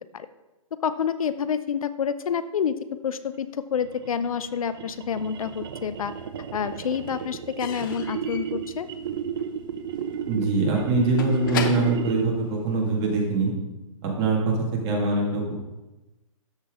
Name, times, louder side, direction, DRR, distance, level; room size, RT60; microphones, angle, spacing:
voice 1, 0.8-2.8 3.0-6.1 6.5-8.9, left 7 dB, 80° left, 13 dB, 0.6 m, -28 dB
sound 1, 3.7-12.4, right 8 dB, 45° right, 0.8 m, -34 dB
Slam / Squeak / Wood, 5.3-6.2 6.4-13.2, left 7 dB, 35° left, 0.8 m, -37 dB
voice 2, 10.3-13.5 14.0-15.5, right 3 dB, 25° right, -1 dB, 2.0 m, -23 dB
13.0 x 5.8 x 3.6 m, 1.1 s
hypercardioid pair, 155°, 18 cm